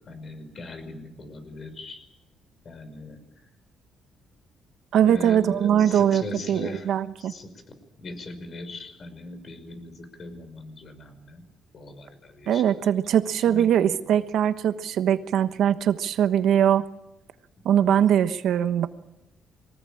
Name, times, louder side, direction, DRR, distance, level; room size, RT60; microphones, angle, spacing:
voice 1, 0.0-2.0 2.6-3.2 5.0-6.9 7.3-7.5 8.0-11.4 11.7-12.6 13.4-13.9 17.7-17.9, left 2 dB, 45° left, 9 dB, 5.4 m, -39 dB
voice 2, 4.9-7.3 12.5-16.8 17.6-18.9, right 9 dB, 75° right, 11 dB, 1.2 m, -21 dB
23.0 x 19.0 x 8.8 m, 0.90 s
cardioid pair, 90°, 0 cm